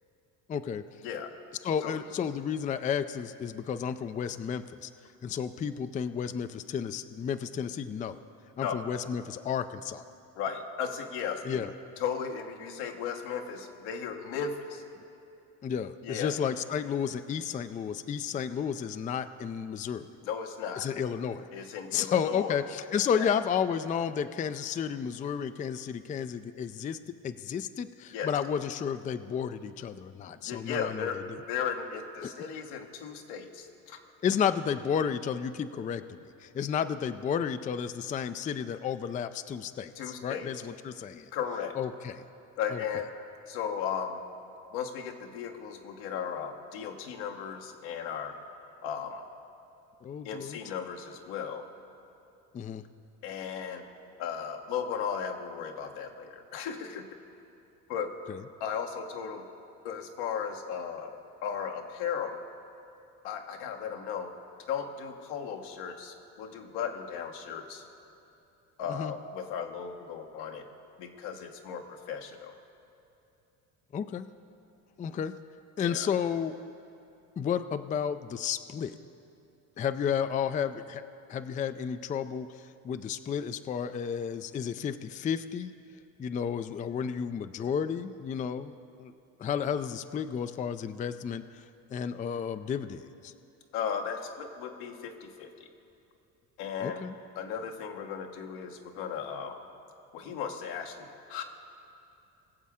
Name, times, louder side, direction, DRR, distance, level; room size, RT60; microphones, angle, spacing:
voice 1, 0.5-0.8 1.6-4.9 5.2-8.2 8.6-10.0 11.4-11.7 15.6-20.1 20.8-21.5 21.9-27.0 27.2-31.4 32.2-32.3 34.2-41.3 41.8-42.2 42.7-42.8 50.0-50.6 52.5-52.8 58.3-58.4 68.9-69.1 73.9-74.3 75.0-75.3 75.8-76.6 77.4-79.0 79.8-81.0 81.3-85.7 86.2-89.1 89.4-91.6 91.9-93.3 96.8-97.1, left 7 dB, 20° left, 11 dB, 0.4 m, -32 dB
voice 2, 10.4-11.7 12.0-14.8 16.0-16.4 20.2-20.9 21.5-22.6 22.9-23.3 28.1-28.3 30.4-31.2 31.5-34.0 40.0-40.5 41.3-41.8 42.6-43.1 43.5-44.2 44.7-48.3 48.8-49.2 50.2-51.6 53.2-53.8 54.2-57.0 57.9-58.1 58.6-59.4 59.8-62.4 63.2-64.3 64.7-67.8 68.8-70.7 71.0-72.5 75.8-76.1 93.7-95.7 96.6-99.6 100.1-101.4, left 7 dB, 80° left, 4 dB, 1.2 m, -36 dB
21.5 x 7.4 x 3.6 m, 2.8 s
supercardioid pair, 80°, 38 cm